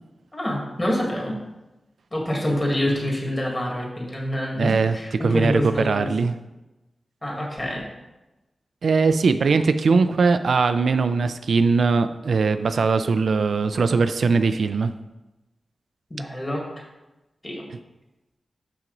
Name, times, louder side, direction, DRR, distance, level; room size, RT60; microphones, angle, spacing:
voice 1, 0.3-1.4 2.1-6.1 7.2-7.8 16.1-16.6 17.4-17.6, left 1 dB, 20° left, -1 dB, 2.0 m, -26 dB
voice 2, 4.6-5.0 5.2-6.4 8.8-14.9, right 4 dB, 80° right, 10 dB, 0.3 m, -20 dB
5.9 x 5.8 x 3.9 m, 1.0 s
wide cardioid pair, 75°, 0 cm